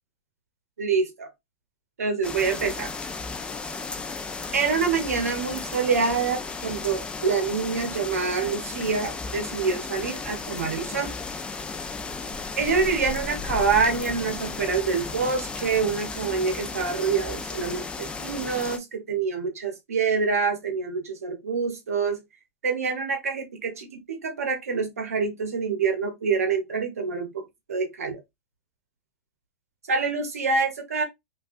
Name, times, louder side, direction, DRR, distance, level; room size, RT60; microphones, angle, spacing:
voice 1, 0.8-1.3 2.0-2.9 4.5-11.1 12.6-22.2 22.6-28.2 29.9-31.0, right 5 dB, 90° right, 0.7 m, -26 dB
sound 1, 2.2-18.8, left 4 dB, 10° left, 0.4 m, -34 dB
3.2 x 2.3 x 2.5 m
hypercardioid pair, 115°, 8 cm